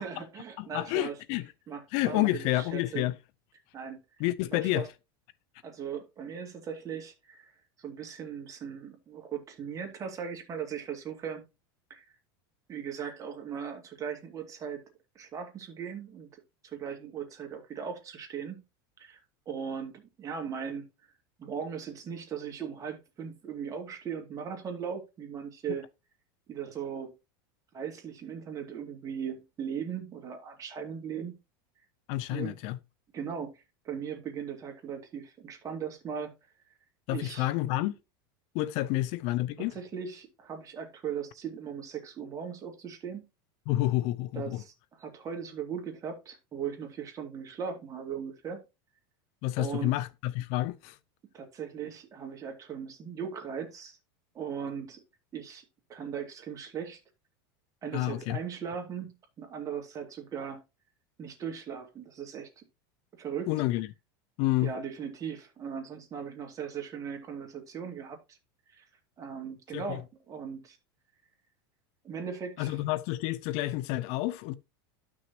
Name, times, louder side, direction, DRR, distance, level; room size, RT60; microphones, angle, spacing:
voice 1, 0.0-1.2 1.7-3.1 3.7-4.0 4.5-4.9 5.6-7.5 7.8-11.5 11.9-12.0 12.7-14.8 15.1-18.6 19.0-19.2 19.5-20.9 21.4-25.8 26.5-27.1 27.7-31.3 32.3-32.6 33.1-33.5 33.8-36.3 37.1-37.5 39.7-43.2 44.3-48.6 49.6-49.9 51.3-54.0 54.3-55.0 55.3-55.6 55.9-57.0 57.8-60.6 61.2-62.6 63.2-63.5 64.6-68.4 68.7-68.8 69.2-70.8 72.0-72.8, right 7 dB, 30° right, 2.5 m, -38 dB
voice 2, 0.6-1.5 1.9-3.2 4.2-4.9 32.1-32.8 37.1-38.0 38.5-39.7 43.7-44.6 49.4-51.0 57.9-58.4 63.5-63.9 64.4-64.7 69.7-70.0 72.6-74.6, left 16 dB, 55° left, 0.6 m, -29 dB
12.5 x 6.2 x 2.9 m
supercardioid pair, 125°, 12 cm